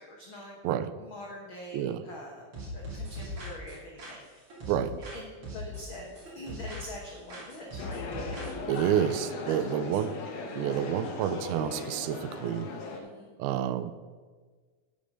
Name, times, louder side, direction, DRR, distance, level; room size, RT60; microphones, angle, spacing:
voice 1, 0.0-0.6 1.0-2.4 2.7-4.4 5.1-8.0 8.9-9.1 9.5-10.0 13.0-13.3, left 1 dB, 80° left, -1 dB, 1.1 m, -44 dB
voice 2, 0.6-1.0 1.7-2.0 4.7-5.0 8.7-10.2 10.5-12.7 13.4-13.9, right 10 dB, 90° right, 13 dB, 2.5 m, -29 dB
sound 1, 2.5-5.2 5.4-7.0 7.3-8.9, left 1 dB, 40° right, 3.5 m, -40 dB
sound 2, 7.8-13.0, left 3 dB, 65° left, 2.0 m, -38 dB
8.9 x 6.9 x 6.3 m, 1.5 s
omnidirectional pair, 4.3 m